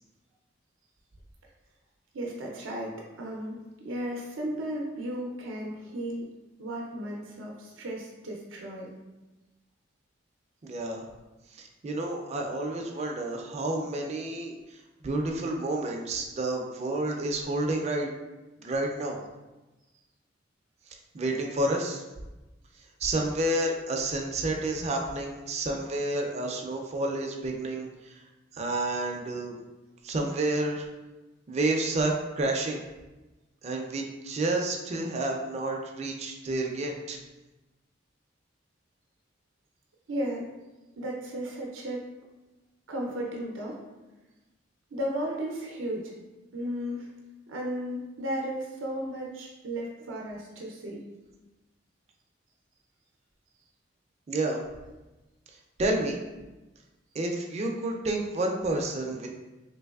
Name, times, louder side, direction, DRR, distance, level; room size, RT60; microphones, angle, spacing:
voice 1, 2.1-6.3 6.6-8.9 40.1-40.5 41.0-42.0 42.9-43.8 44.9-46.1 46.5-47.1 47.5-51.0, equal, 85° right, -1 dB, 0.5 m, -34 dB
voice 2, 10.6-11.1 11.5-14.6 15.0-18.1 18.6-19.2 21.1-22.0 23.0-28.2 28.5-29.6 30.0-30.9 31.5-32.8 33.6-37.2 54.3-54.6 55.8-56.2 57.1-59.3, right 2 dB, 35° right, 2 dB, 0.4 m, -30 dB
3.2 x 3.0 x 2.3 m, 1.1 s
head